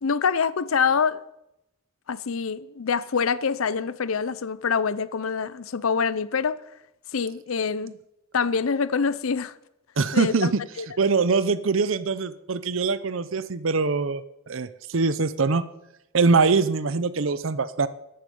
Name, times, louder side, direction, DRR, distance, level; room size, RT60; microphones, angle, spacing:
voice 1, 0.0-1.2 2.1-6.6 7.1-7.9 8.3-9.5 10.1-10.5 10.8-10.9, left 5 dB, 75° left, 0.6 m, -25 dB
voice 2, 10.0-10.5 11.0-15.6 16.1-17.9, right 4 dB, 65° right, 0.7 m, -23 dB
13.5 x 11.0 x 5.4 m
head